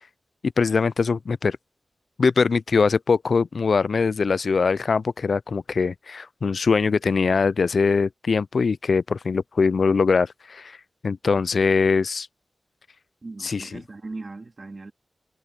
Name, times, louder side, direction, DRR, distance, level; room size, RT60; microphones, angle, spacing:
voice 1, 0.6-1.6 2.2-10.8 11.0-12.3 13.4-13.6, left 5 dB, 70° left, 0.4 m, -22 dB
voice 2, 13.2-14.9, right 3 dB, 45° right, 3.1 m, -38 dB
wide cardioid pair, 85°, 0 cm